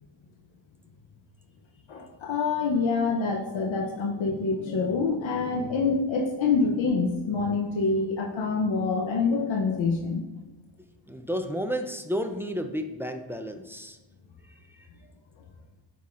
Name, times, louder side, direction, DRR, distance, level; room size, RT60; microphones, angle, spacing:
voice 1, 1.9-10.2, left 4 dB, 85° left, 1 dB, 0.7 m, -26 dB
voice 2, 11.1-14.0 14.7-14.8, equal, 5° right, 6 dB, 0.3 m, -32 dB
7.4 x 5.7 x 2.5 m, 1.1 s
wide cardioid pair, 105°, 46 cm